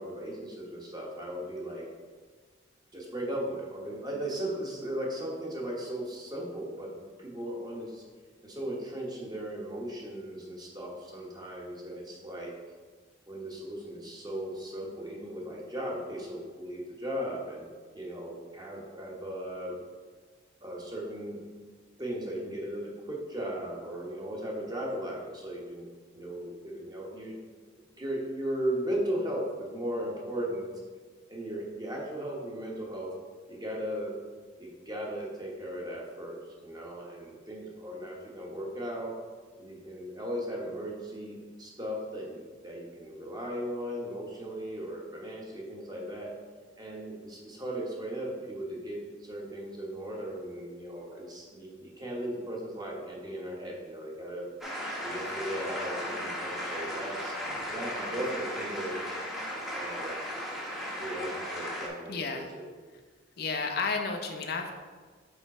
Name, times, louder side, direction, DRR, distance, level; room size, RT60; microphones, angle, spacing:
voice 1, 0.0-1.8 2.9-8.0 8.4-12.5 13.3-17.7 17.9-19.7 20.6-21.4 22.0-25.9 26.1-27.4 27.8-30.7 31.3-33.1 33.5-34.1 34.6-39.2 39.6-46.3 46.8-54.5 55.0-57.3 57.7-59.0 59.7-60.2 61.0-62.6, right 1 dB, 20° right, -2 dB, 1.1 m, -37 dB
sound 1, 54.6-61.9, equal, ahead, 0.8 m, -36 dB
voice 2, 62.1-62.5 63.4-64.7, left 4 dB, 55° left, 4 dB, 0.6 m, -32 dB
5.1 x 4.5 x 4.2 m, 1.5 s
head